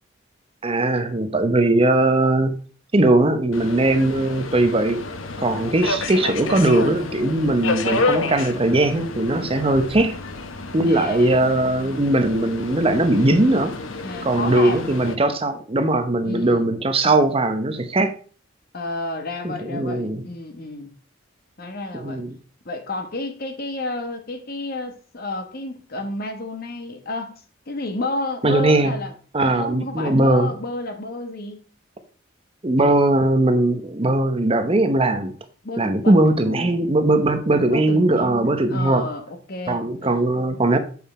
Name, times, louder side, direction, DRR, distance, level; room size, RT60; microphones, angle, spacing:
voice 1, 0.6-2.6 2.9-5.1 5.4-10.2 10.7-13.7 14.2-18.1 19.4-20.2 21.9-22.4 28.4-29.0 29.3-30.5 32.6-35.4 35.8-39.1 39.7-40.8, right 2 dB, 30° right, 0.8 m, -19 dB
Subway metro underground, 3.5-15.2, left 3 dB, 80° left, 0.8 m, -30 dB
voice 2, 10.8-11.4 14.0-14.9 16.2-16.7 18.7-20.9 21.6-22.2 22.6-27.4 27.7-29.1 29.4-31.6 35.6-36.2 36.4-36.9 37.7-40.4, left 2 dB, 50° left, 1.1 m, -31 dB
7.8 x 5.5 x 4.2 m
head